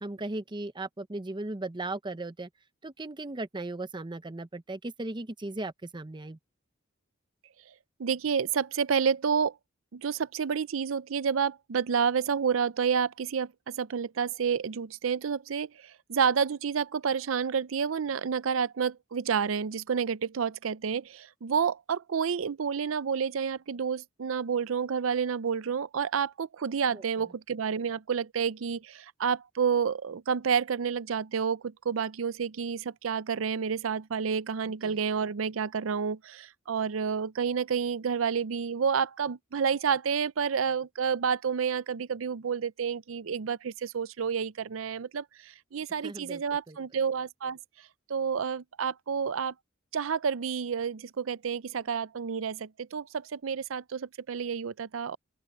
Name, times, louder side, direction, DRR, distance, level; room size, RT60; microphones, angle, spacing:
voice 1, 0.0-2.5 2.8-6.4 26.9-27.0 34.8-35.0 46.0-46.4 46.7-46.8, right 2 dB, 25° right, 0.7 m, -37 dB
voice 2, 8.0-9.5 9.9-47.6 48.1-49.5 49.9-55.2, right 6 dB, 80° right, 0.5 m, -29 dB
open air
head